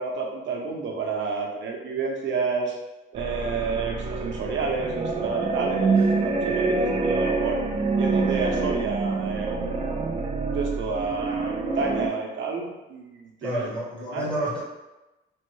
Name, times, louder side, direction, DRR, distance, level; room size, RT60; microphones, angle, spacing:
voice 1, 0.0-2.7 3.1-7.6 8.0-10.0 10.5-13.7 14.1-14.3, right 4 dB, 70° right, 0 dB, 0.7 m, -30 dB
sound 1, 3.2-12.1, right 3 dB, 30° right, 0.4 m, -26 dB
voice 2, 13.4-14.6, right 1 dB, 25° left, -5 dB, 0.9 m, -30 dB
3.1 x 2.2 x 3.1 m, 1.0 s
cardioid pair, 90°, 20 cm